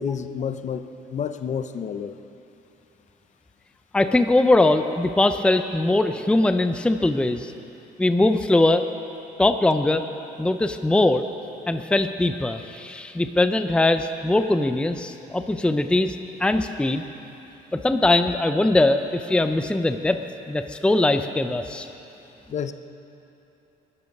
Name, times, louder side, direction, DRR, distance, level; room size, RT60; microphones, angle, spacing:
voice 1, 0.0-2.2 22.5-22.7, left 7 dB, 45° left, 10 dB, 0.8 m, -29 dB
voice 2, 3.9-7.5 8.0-8.8 9.4-10.0 10.4-11.2 11.7-17.0 17.7-20.2 20.5-21.9, left 2 dB, 5° left, 8 dB, 0.6 m, -21 dB
21.0 x 12.5 x 5.4 m, 2.9 s
cardioid pair, 110°, 17 cm